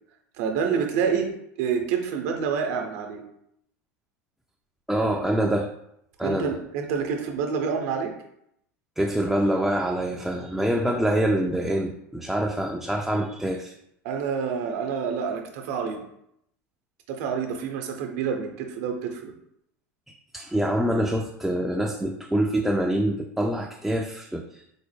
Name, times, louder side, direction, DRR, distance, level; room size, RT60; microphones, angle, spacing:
voice 1, 0.4-1.3 1.6-3.2 6.2-8.1 14.0-16.0 17.1-19.3, right 6 dB, 65° right, 4 dB, 0.7 m, -27 dB
voice 2, 4.9-5.7 6.2-6.6 9.0-13.7 20.1-24.6, right 1 dB, ahead, 1 dB, 0.3 m, -25 dB
4.2 x 2.0 x 3.3 m, 0.76 s
hypercardioid pair, 90°, 8 cm